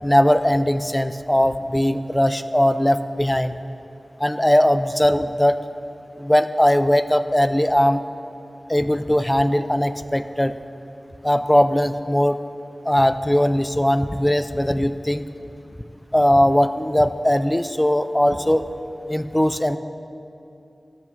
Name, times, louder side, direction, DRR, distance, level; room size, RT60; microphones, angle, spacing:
voice 1, 0.0-3.6 4.2-5.6 6.2-8.0 8.7-10.5 11.2-12.4 12.9-15.2 16.1-18.6 19.1-19.8, equal, 10° left, 11 dB, 0.3 m, -19 dB
11.5 x 7.4 x 4.0 m, 2.7 s
wide cardioid pair, 80°, 0 cm